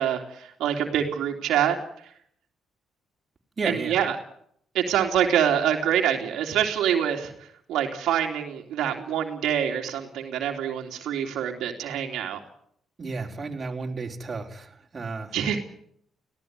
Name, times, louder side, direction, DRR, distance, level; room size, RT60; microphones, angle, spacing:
voice 1, 0.0-1.8 3.9-4.1 4.7-7.3 7.7-12.4 15.3-15.6, right 9 dB, 80° right, 2 dB, 3.1 m, -25 dB
voice 2, 3.6-4.0 13.0-15.4, right 4 dB, 35° right, 1 dB, 4.5 m, -32 dB
19.0 x 17.0 x 9.7 m, 0.66 s
cardioid pair, 90°, 0 cm